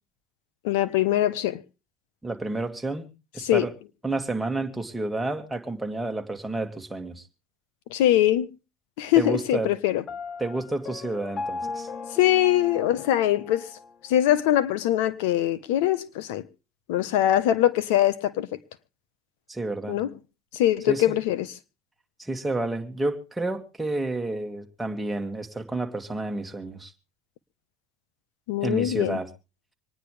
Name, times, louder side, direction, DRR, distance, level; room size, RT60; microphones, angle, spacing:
voice 1, 0.6-1.6 3.4-3.6 7.9-8.5 9.0-10.0 12.2-13.7 14.0-16.4 16.9-18.5 19.9-20.1 20.5-21.5 28.5-29.2, left 12 dB, 80° left, 1.2 m, -22 dB
voice 2, 2.2-3.7 4.0-7.2 9.2-9.7 10.4-11.9 19.5-20.0 20.9-21.2 22.2-26.9 28.6-29.3, right 2 dB, 10° right, 2.3 m, -30 dB
Piano, 10.1-13.9, left 4 dB, 35° left, 0.9 m, -37 dB
26.0 x 9.9 x 3.4 m
supercardioid pair, 100°, 0 cm